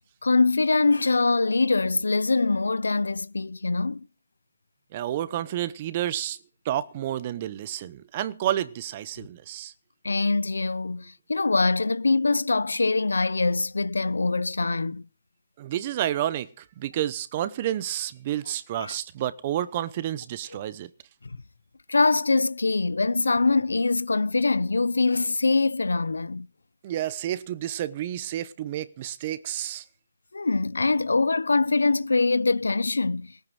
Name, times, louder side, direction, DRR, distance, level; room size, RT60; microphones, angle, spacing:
voice 1, 0.2-4.1 9.2-9.3 10.0-15.0 18.8-18.9 21.2-21.4 21.9-26.5 30.3-33.5, left 3 dB, 90° left, 0.7 m, -23 dB
voice 2, 4.9-6.4 6.6-9.7 15.6-20.9 26.8-29.8, right 12 dB, 30° right, 0.8 m, -30 dB
18.0 x 9.3 x 6.2 m
hypercardioid pair, 165°, 0 cm